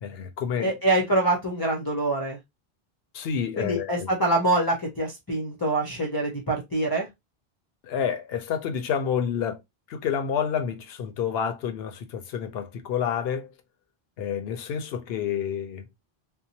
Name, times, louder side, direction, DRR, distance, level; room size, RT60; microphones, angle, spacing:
voice 1, 0.0-0.7 3.1-4.1 7.8-9.6 9.9-13.5 14.2-15.9, left 7 dB, 80° left, 0.8 m, -29 dB
voice 2, 0.6-2.4 3.6-7.1, right 2 dB, 30° left, 0.5 m, -25 dB
2.7 x 2.0 x 2.7 m
omnidirectional pair, 1.0 m